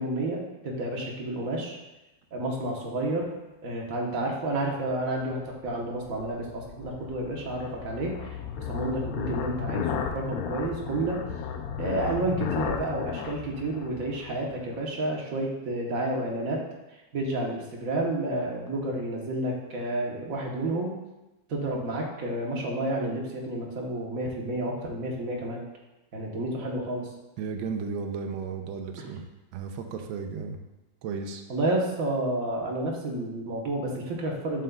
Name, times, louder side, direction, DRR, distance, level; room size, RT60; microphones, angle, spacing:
voice 1, 0.0-1.8 2.3-3.2 3.6-8.3 8.7-11.2 11.8-16.6 16.9-20.9 21.5-25.6 26.1-27.1 29.0-29.1 31.5-34.6, right 1 dB, 50° right, -1 dB, 1.4 m, -30 dB
sound 1, 5.2-14.8, left 7 dB, 85° left, 0.7 m, -35 dB
voice 2, 27.4-29.2 29.5-30.6 31.0-31.4, right 5 dB, 90° right, 5 dB, 1.4 m, -34 dB
7.3 x 6.6 x 2.3 m, 1.0 s
omnidirectional pair, 2.1 m